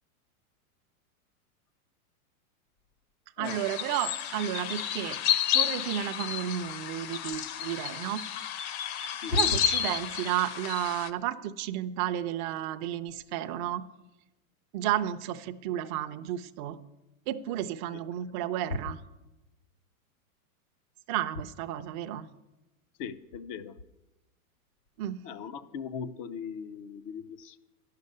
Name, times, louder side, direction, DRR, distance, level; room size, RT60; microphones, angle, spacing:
sound 1, 3.4-11.1, left 10 dB, 45° left, 0.8 m, -31 dB
voice 1, 3.4-5.2 5.5-8.3 9.0-13.8 14.7-16.8 17.3-19.0 21.1-22.3 25.0-25.2, right 12 dB, 35° right, 8 dB, 0.5 m, -32 dB
voice 2, 9.2-9.6 23.0-23.7 25.2-27.6, left 4 dB, 25° left, 14 dB, 0.4 m, -37 dB
11.0 x 6.7 x 9.4 m, 1.0 s
hypercardioid pair, 140°, 44 cm